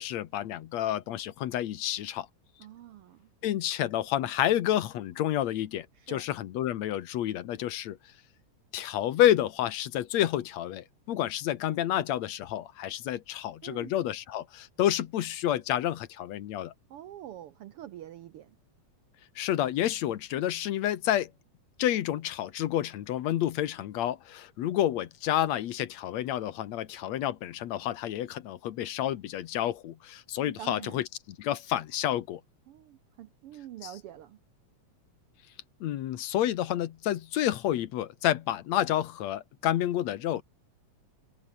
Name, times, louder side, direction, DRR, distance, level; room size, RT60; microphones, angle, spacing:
voice 1, 0.0-2.3 3.4-8.0 8.7-16.7 19.4-21.3 21.8-32.4 33.8-33.9 35.8-40.4, left 12 dB, 70° left, 2.3 m, -29 dB
voice 2, 2.6-3.3 6.0-6.2 13.6-13.9 16.9-18.5 30.4-31.0 32.7-34.4, right 12 dB, 75° right, 1.4 m, -45 dB
omnidirectional pair, 3.3 m